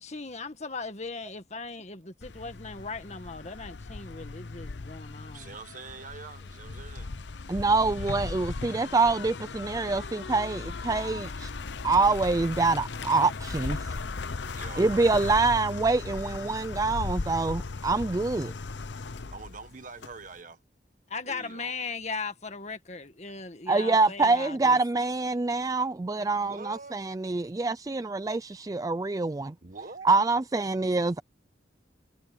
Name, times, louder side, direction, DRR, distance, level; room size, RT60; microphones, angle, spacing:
voice 1, 0.0-5.6 21.1-24.8, left 4 dB, 40° left, 1.8 m, -38 dB
sound 1, 2.2-20.4, left 3 dB, 75° left, 0.8 m, -37 dB
voice 2, 5.3-7.1 7.5-7.6 7.9-8.1 14.5-14.8 19.3-20.6 21.2-21.7 26.4-26.9 29.6-30.1, right 4 dB, 45° right, 1.3 m, -44 dB
voice 3, 7.5-11.5 11.8-14.0 14.8-18.5 23.7-29.5 30.0-31.2, right 3 dB, 20° right, 0.3 m, -25 dB
head